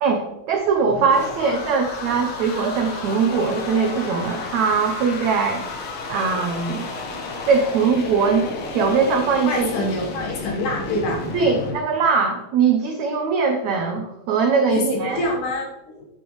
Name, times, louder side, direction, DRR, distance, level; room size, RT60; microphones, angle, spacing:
voice 1, 0.0-5.6 6.1-6.9 7.5-8.5 8.7-9.7 11.3-15.2, right 5 dB, 80° right, 3 dB, 1.6 m, -21 dB
sound 1, 0.5-11.8, left 3 dB, 80° left, 1.3 m, -32 dB
voice 2, 9.5-11.2 14.7-16.1, left 1 dB, 65° left, 0 dB, 2.6 m, -26 dB
10.0 x 9.1 x 3.2 m, 0.94 s
omnidirectional pair, 4.4 m